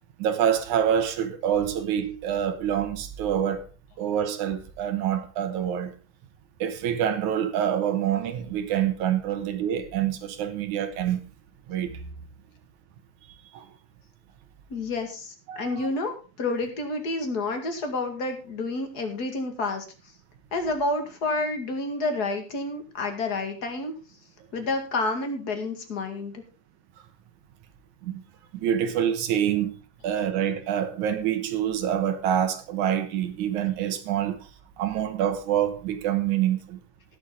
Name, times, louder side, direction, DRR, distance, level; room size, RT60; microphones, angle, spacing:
voice 1, 0.2-3.7 4.0-5.9 6.6-11.3 11.7-12.1 13.5-13.7 15.5-15.9 28.0-28.2 28.5-29.7 30.0-34.4 34.8-36.8, right 9 dB, 70° right, 2.5 m, -26 dB
voice 2, 14.7-19.9 20.5-23.9 24.5-26.4, left 2 dB, 35° left, 2.1 m, -29 dB
19.0 x 7.1 x 3.8 m
omnidirectional pair, 3.8 m